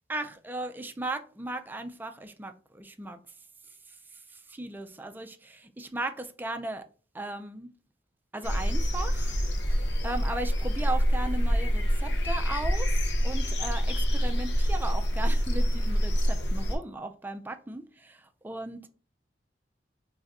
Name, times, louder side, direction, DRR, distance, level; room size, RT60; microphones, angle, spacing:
voice 1, 0.1-3.2 4.1-6.9 7.1-7.7 8.3-9.4 9.7-18.9, right 2 dB, 10° right, 0.3 m, -37 dB
sound 1, 8.4-16.8, equal, 70° left, 0.6 m, -26 dB
3.3 x 2.5 x 4.0 m
head